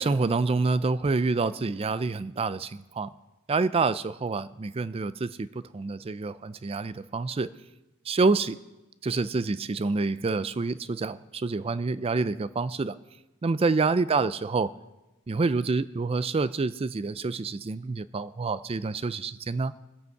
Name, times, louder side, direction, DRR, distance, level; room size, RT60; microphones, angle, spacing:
voice 1, 0.0-3.1 3.5-5.5 5.7-7.5 8.1-8.6 9.0-13.0 13.4-14.7 15.3-19.7, right 3 dB, 25° right, 16 dB, 0.4 m, -27 dB
20.0 x 8.3 x 4.6 m, 1.0 s
head